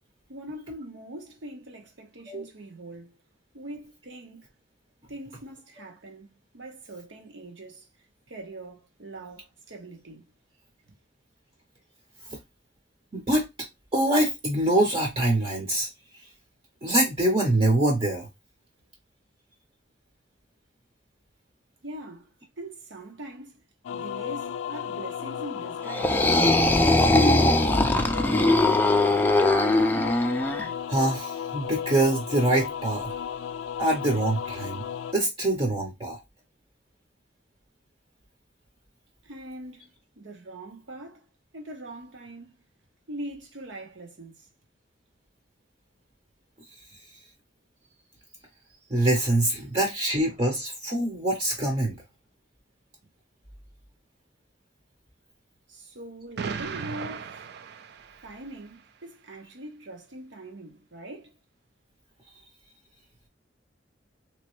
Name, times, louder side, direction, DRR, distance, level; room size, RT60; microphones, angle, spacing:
voice 1, 0.3-3.1 3.5-4.4 5.1-7.9 8.3-10.2 21.8-22.3 22.6-23.6 23.9-26.2 39.2-39.9 40.2-41.2 41.5-42.6 43.1-44.4 55.7-57.5 58.2-61.3, right 1 dB, 80° right, 1.1 m, -42 dB
voice 2, 13.1-13.5 13.9-15.9 16.8-18.3 29.4-29.7 30.9-33.2 33.8-34.8 35.1-36.2 48.9-52.0, right 1 dB, 30° right, 0.8 m, -24 dB
sound 1, 23.8-35.1, left 8 dB, 90° left, 0.3 m, -34 dB
sound 2, 25.9-30.7, left 2 dB, 10° left, 0.4 m, -21 dB
Explosion, 56.4-58.5, right 6 dB, 60° right, 0.4 m, -36 dB
3.3 x 2.9 x 3.1 m
head